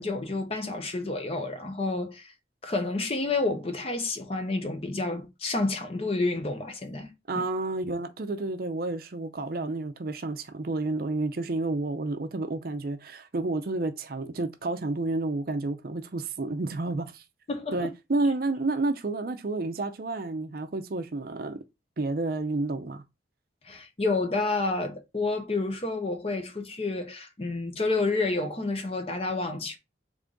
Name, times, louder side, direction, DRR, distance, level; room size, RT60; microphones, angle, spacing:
voice 1, 0.0-2.3 2.6-7.1 17.5-17.9 23.7-29.8, left 3 dB, 30° left, 0.7 m, -29 dB
voice 2, 7.3-17.2 17.7-21.6 22.0-23.0, right 2 dB, 50° right, 0.5 m, -30 dB
3.6 x 3.5 x 3.8 m
head